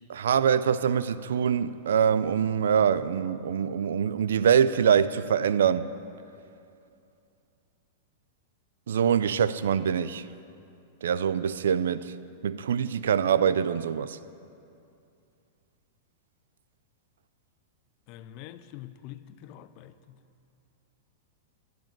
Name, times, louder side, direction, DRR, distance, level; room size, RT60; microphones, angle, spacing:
voice 1, 0.1-5.9 8.9-10.3 11.0-12.1 12.4-14.2, right 8 dB, 85° right, 0.4 m, -24 dB
voice 2, 18.1-20.2, left 12 dB, 50° left, 0.5 m, -45 dB
12.0 x 10.0 x 4.5 m
hypercardioid pair, 125°, 0 cm